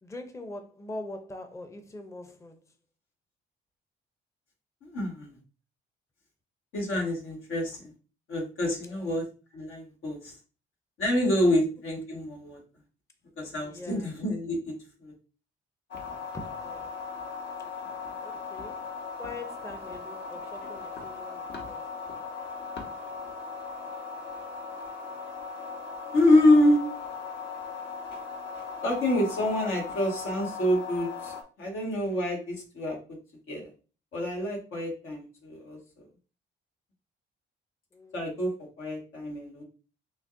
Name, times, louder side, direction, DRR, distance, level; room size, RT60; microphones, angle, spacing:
voice 1, 0.0-2.6 8.8-9.1 11.4-11.5 13.6-14.1 16.3-16.9 18.2-18.8 19.2-21.8 37.9-38.2, left 2 dB, 15° left, 0.6 m, -43 dB
voice 2, 4.8-5.4 6.7-7.9 8.3-9.2 9.5-10.4 11.0-12.6 13.4-14.7 15.0-15.1 26.1-26.8 28.8-33.0 33.5-33.7 34.1-36.1 38.1-38.5 38.8-39.6, left 1 dB, 80° left, 1.7 m, -26 dB
sound 1, 15.9-31.4, left 4 dB, 65° left, 1.2 m, -38 dB
6.2 x 2.2 x 2.6 m
cardioid pair, 90°, 20 cm